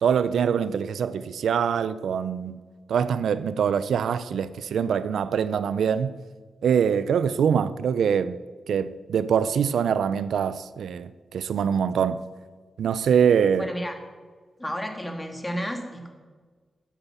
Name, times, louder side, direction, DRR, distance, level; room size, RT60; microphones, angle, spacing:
voice 1, 0.0-2.6 2.9-6.2 6.6-8.4 8.7-12.2 12.8-13.7, right 7 dB, 90° right, 0.5 m, -24 dB
voice 2, 13.6-14.0 14.6-16.1, equal, 10° left, 2.1 m, -32 dB
12.0 x 9.8 x 7.1 m
wide cardioid pair, 105°, 0 cm